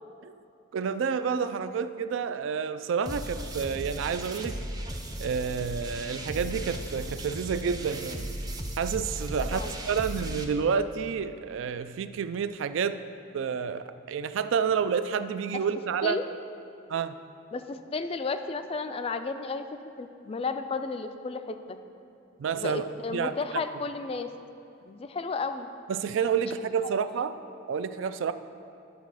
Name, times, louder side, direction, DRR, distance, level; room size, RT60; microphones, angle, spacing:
voice 1, 0.7-4.6 5.2-8.3 8.8-13.0 13.3-16.2 16.9-17.2 22.4-23.3 25.9-27.3 27.7-28.3, right 6 dB, 70° right, 12 dB, 0.3 m, -29 dB
sound 1, 3.1-10.5, right 1 dB, 20° right, 0.5 m, -36 dB
voice 2, 9.4-9.7 16.0-16.3 17.5-19.7 20.0-21.8 22.5-24.3 24.8-25.7, left 4 dB, 30° left, 9 dB, 0.3 m, -33 dB
10.5 x 4.0 x 6.2 m, 2.7 s
head